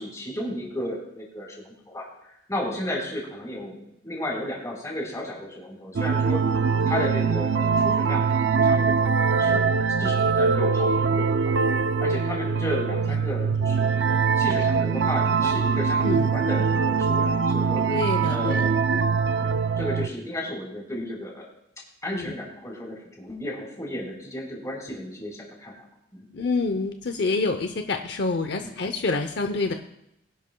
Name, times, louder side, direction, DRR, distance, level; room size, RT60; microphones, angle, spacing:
voice 1, 0.0-2.1 2.5-6.4 6.8-11.5 12.0-14.0 14.4-18.0 18.3-18.8 19.3-21.5 22.0-25.7 26.1-26.3 28.6-28.7, left 1 dB, 20° left, -2 dB, 4.3 m, -33 dB
sound 1, 6.0-20.1, right 5 dB, 80° right, 0.5 m, -23 dB
voice 2, 16.0-16.3 17.9-19.2 22.1-22.3 26.3-29.7, left 3 dB, 65° left, 6 dB, 0.7 m, -28 dB
22.0 x 11.0 x 2.3 m, 0.81 s
head